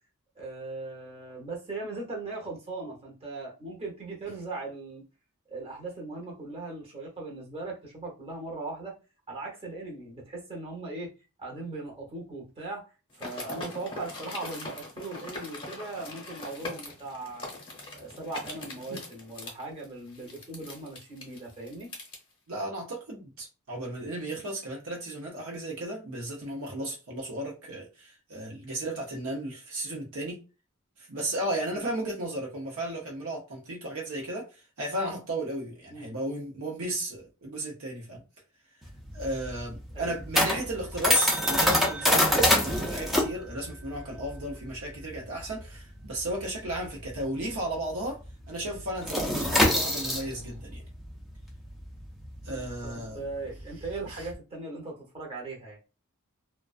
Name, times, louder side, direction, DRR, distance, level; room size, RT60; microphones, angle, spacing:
voice 1, 0.4-5.0 5.5-8.9 9.3-11.1 11.4-12.8 13.1-17.5 17.9-21.9 31.6-31.9 35.9-36.1 39.9-40.1 52.4-55.8, right 3 dB, 30° right, 0.8 m, -39 dB
sound 1, 13.1-22.2, left 2 dB, 25° left, 0.8 m, -41 dB
voice 2, 22.5-30.4 31.1-38.2 39.1-48.2 48.5-50.8 52.4-53.2 54.1-54.3, right 1 dB, 70° right, 0.7 m, -34 dB
sound 2, 38.8-47.8 48.0-48.3 48.6-54.3, left 1 dB, ahead, 0.4 m, -26 dB
2.4 x 2.2 x 2.4 m
head